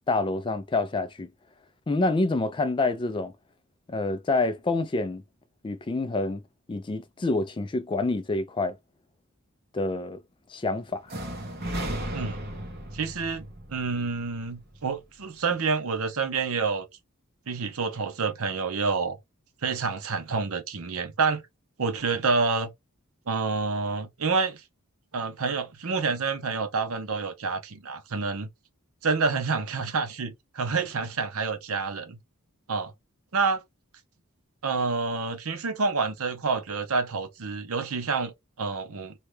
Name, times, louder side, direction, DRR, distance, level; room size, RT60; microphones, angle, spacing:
voice 1, 0.1-1.3 1.9-3.3 3.9-5.2 5.6-6.4 6.7-8.8 9.7-10.2 10.5-11.0, left 2 dB, 20° left, 0.3 m, -27 dB
sound 1, 11.1-15.0, right 1 dB, 45° right, 1.0 m, -35 dB
voice 2, 12.1-12.4 12.9-16.9 17.5-19.2 19.6-21.4 21.8-22.7 23.3-24.6 25.1-28.5 29.0-32.2 32.7-32.9 33.3-33.6 34.6-39.1, right 4 dB, 70° right, 0.7 m, -28 dB
2.8 x 2.3 x 3.2 m
head